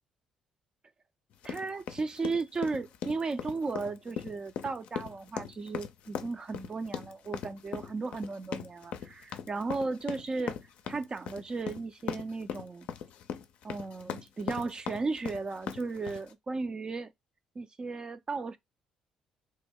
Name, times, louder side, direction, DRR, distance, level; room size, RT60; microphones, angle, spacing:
sound 1, 1.4-16.3, left 8 dB, 70° left, 0.4 m, -39 dB
voice 1, 1.4-10.6 10.9-12.9 13.6-17.1 17.6-18.6, right 3 dB, 35° right, 0.4 m, -35 dB
3.1 x 2.1 x 3.4 m
supercardioid pair, 60°, 2 cm